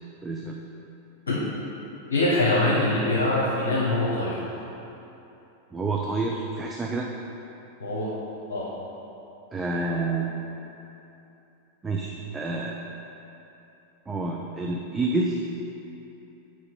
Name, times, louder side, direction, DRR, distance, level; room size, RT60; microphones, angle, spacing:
voice 1, 0.2-0.6 5.7-7.1 9.5-10.4 11.8-12.8 14.1-15.4, right 3 dB, 15° right, -1 dB, 0.5 m, -28 dB
voice 2, 2.1-4.4 7.8-8.1 8.5-8.7, left 2 dB, 70° left, -7 dB, 1.0 m, -23 dB
7.7 x 4.9 x 4.0 m, 2.9 s
figure-of-eight pair, 90°, 0 cm